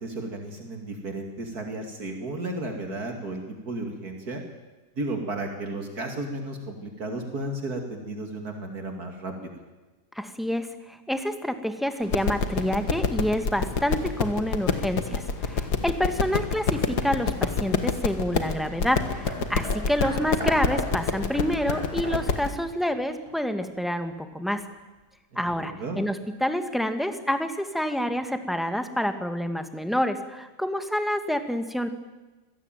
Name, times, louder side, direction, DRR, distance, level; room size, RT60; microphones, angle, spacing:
voice 1, 0.0-4.4 5.0-9.3 25.3-26.0, right 2 dB, 65° right, 4 dB, 2.9 m, -33 dB
voice 2, 10.1-24.6 25.3-31.9, equal, ahead, 8 dB, 1.6 m, -28 dB
sound 1, 12.0-22.5, left 5 dB, 75° left, 2.2 m, -27 dB
Hammer, 19.0-23.7 24.5-24.6, equal, 15° right, 6.7 m, -38 dB
26.0 x 17.5 x 9.1 m, 1.2 s
omnidirectional pair, 1.8 m